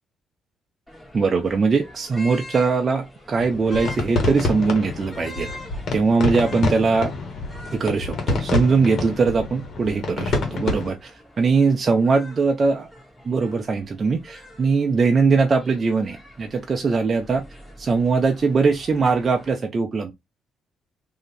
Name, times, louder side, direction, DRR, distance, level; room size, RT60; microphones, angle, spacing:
sound 1, 0.9-19.5, left 1 dB, 10° left, 1.9 m, -45 dB
voice 1, 1.1-5.5 5.9-7.1 7.7-11.1 11.4-12.9 13.2-17.4 17.8-20.1, right 4 dB, 40° right, 0.6 m, -21 dB
sound 2, 3.4-10.9, left 3 dB, 60° left, 1.5 m, -27 dB
3.1 x 2.9 x 4.0 m
cardioid pair, 90°, 0 cm